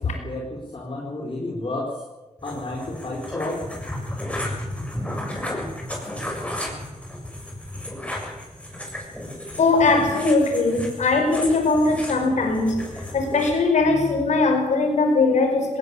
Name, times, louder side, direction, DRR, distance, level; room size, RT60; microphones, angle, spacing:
voice 1, 0.0-1.9 2.4-3.6, left 2 dB, 45° left, -2 dB, 4.8 m, -31 dB
sound 1, 2.4-13.6, left 1 dB, 10° left, 6.9 m, -33 dB
voice 2, 9.6-12.8 13.1-15.8, left 3 dB, 80° left, 4 dB, 5.1 m, -20 dB
19.0 x 18.5 x 8.4 m, 1.1 s
cardioid pair, 60°, 12 cm